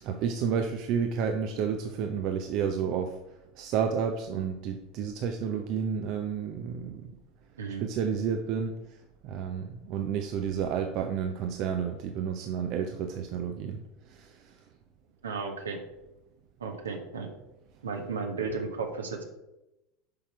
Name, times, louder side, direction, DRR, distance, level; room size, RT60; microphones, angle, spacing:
voice 1, 0.0-3.2 3.6-7.1 7.8-8.8 9.2-13.8 14.1-14.5, right 7 dB, 45° right, 6 dB, 0.7 m, -31 dB
voice 2, 7.6-7.9 15.2-15.8 16.6-17.3 17.8-19.2, right 4 dB, 70° right, 4 dB, 1.4 m, -34 dB
8.9 x 5.9 x 4.5 m, 0.93 s
figure-of-eight pair, 80°, 0 cm